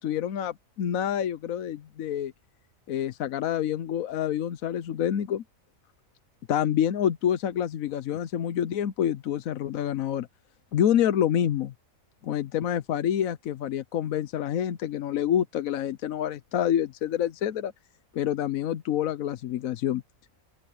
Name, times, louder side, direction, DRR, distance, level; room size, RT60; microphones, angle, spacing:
voice 1, 0.0-2.3 2.9-5.4 6.5-10.3 10.7-11.7 12.2-17.7 18.1-20.0, left 10 dB, 80° left, 1.2 m, -27 dB
open air
omnidirectional pair, 1.4 m